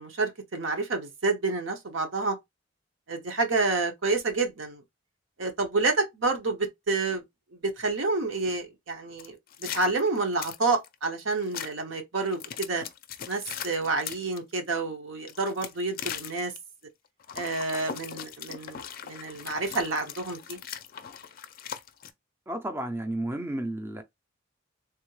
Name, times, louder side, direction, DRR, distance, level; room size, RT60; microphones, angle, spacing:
voice 1, 0.0-2.4 3.1-4.8 5.4-7.2 7.5-12.8 13.3-16.5 17.3-20.6, right 3 dB, 80° right, 0.8 m, -29 dB
sound 1, 9.2-10.9 11.4-11.7 12.2-14.4 15.2-16.6 17.2-22.1, left 8 dB, 50° left, 0.4 m, -39 dB
voice 2, 22.5-24.0, right 1 dB, 15° right, 0.4 m, -32 dB
3.5 x 2.1 x 3.1 m
head